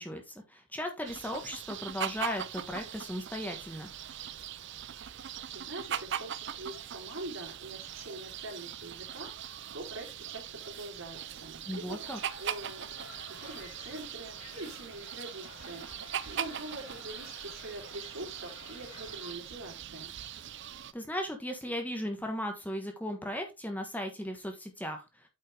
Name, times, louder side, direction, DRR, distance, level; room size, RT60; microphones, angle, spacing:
voice 1, 0.0-3.9 11.7-12.2 20.9-25.2, equal, 10° left, 4 dB, 1.4 m, -37 dB
sound 1, 1.1-20.9, right 9 dB, 55° right, 0.6 m, -41 dB
voice 2, 5.2-20.1, right 1 dB, 75° right, 1 dB, 3.7 m, -44 dB
sound 2, 12.0-19.3, left 4 dB, 80° left, 2.1 m, -52 dB
9.0 x 5.5 x 3.5 m, 0.23 s
head